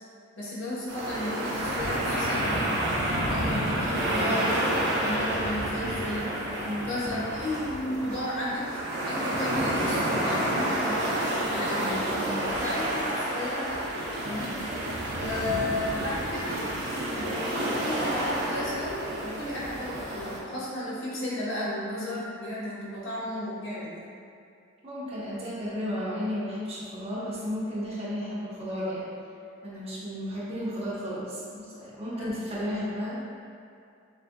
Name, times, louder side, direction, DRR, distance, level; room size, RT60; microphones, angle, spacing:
voice 1, 0.4-2.7 3.2-4.5 4.9-6.3 6.8-11.1 11.5-11.8 12.5-13.8 14.2-14.5 15.1-16.5 17.2-24.1 32.2-32.3, left 1 dB, 60° left, -8 dB, 1.2 m, -33 dB
sound 1, 0.9-20.4, right 1 dB, 55° right, 0.7 m, -29 dB
voice 2, 3.9-4.3 6.6-7.0 11.7-12.5 14.3-14.6 24.8-29.1 29.6-33.2, equal, 30° right, -8 dB, 1.0 m, -34 dB
7.3 x 2.5 x 2.3 m, 2.5 s
head